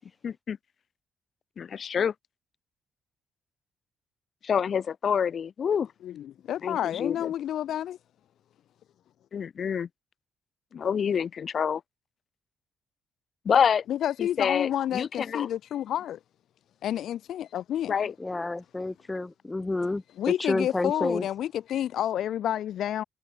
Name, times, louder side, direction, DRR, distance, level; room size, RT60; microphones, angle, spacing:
voice 1, 0.2-0.6 1.6-2.1 4.4-5.9 6.6-7.3 9.3-9.9 10.7-11.8 13.5-13.8 14.2-15.5 17.9-18.1, left 7 dB, 50° left, 1.9 m, -27 dB
voice 2, 6.0-8.0 13.9-16.2 16.8-17.9 20.2-23.0, left 11 dB, 70° left, 0.5 m, -29 dB
voice 3, 18.2-21.3, left 2 dB, 15° left, 3.4 m, -30 dB
cardioid pair, 90°, 0 cm